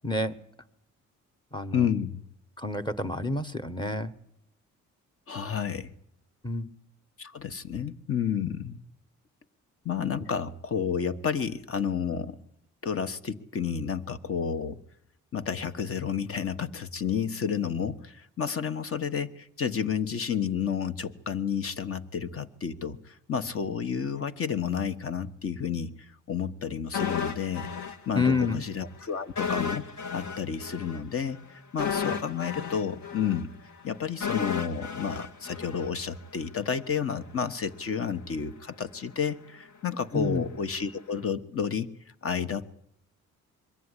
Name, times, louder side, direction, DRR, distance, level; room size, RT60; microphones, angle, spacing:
voice 1, 0.0-0.3 1.5-1.9 2.6-4.1 6.4-6.7 28.1-28.6 32.1-32.2 40.1-40.4, left 3 dB, 15° left, 11 dB, 1.4 m, -28 dB
voice 2, 1.7-2.2 5.3-5.9 7.2-8.8 9.8-12.4 12.8-14.8 15.3-25.9 26.3-27.7 28.1-29.9 30.1-33.5 33.8-41.9 42.2-42.7, left 7 dB, 45° left, 12 dB, 1.4 m, -31 dB
sound 1, 26.9-28.6 28.8-29.0 29.4-36.4 36.7-36.9, left 7 dB, 70° left, 1.9 m, -33 dB
22.5 x 14.5 x 9.9 m, 0.78 s
cardioid pair, 90°, 30 cm